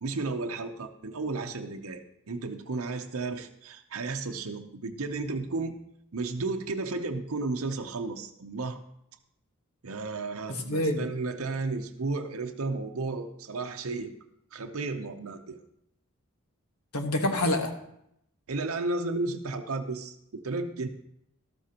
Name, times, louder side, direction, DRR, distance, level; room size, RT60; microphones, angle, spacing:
voice 1, 0.0-5.8 6.1-8.8 9.8-14.1 14.5-15.6 18.5-20.9, right 3 dB, 70° right, 4 dB, 0.7 m, -33 dB
voice 2, 10.5-11.1 16.9-17.7, left 1 dB, 80° left, 4 dB, 1.4 m, -27 dB
12.5 x 12.5 x 2.9 m, 0.77 s
head